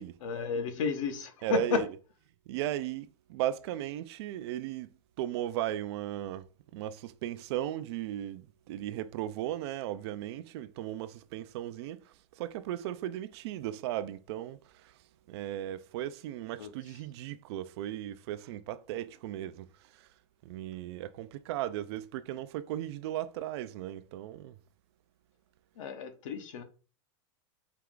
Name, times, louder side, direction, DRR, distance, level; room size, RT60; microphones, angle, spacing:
voice 1, 0.2-1.8 16.6-16.7 25.8-26.6, left 5 dB, 75° left, 1.0 m, -32 dB
voice 2, 1.4-1.9 2.5-4.9 5.2-6.5 6.7-12.0 12.3-14.9 15.3-19.7 19.9-20.1 20.4-24.5, right 12 dB, 55° right, 0.4 m, -36 dB
4.5 x 2.3 x 3.7 m
supercardioid pair, 145°, 17 cm